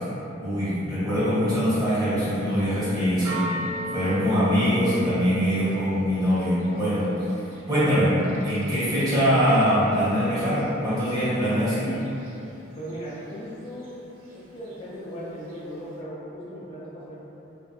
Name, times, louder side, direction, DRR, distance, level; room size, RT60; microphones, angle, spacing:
voice 1, 0.4-3.4 3.9-7.1 7.7-11.9, equal, 20° right, -14 dB, 1.1 m, -23 dB
Church bell, 2.2-16.0, equal, 85° right, 0.4 m, -41 dB
voice 2, 12.8-17.1, equal, 30° left, -8 dB, 0.6 m, -38 dB
2.8 x 2.4 x 2.7 m, 3.0 s
head